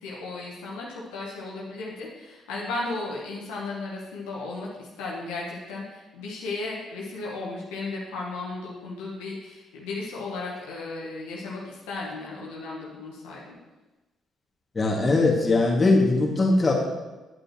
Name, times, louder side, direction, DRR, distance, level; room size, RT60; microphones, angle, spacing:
voice 1, 0.0-13.6, left 3 dB, 75° left, -4 dB, 1.3 m, -35 dB
voice 2, 14.7-16.7, left 2 dB, 30° left, -2 dB, 2.0 m, -20 dB
9.5 x 8.9 x 3.0 m, 1.1 s
hypercardioid pair, 45°, 0 cm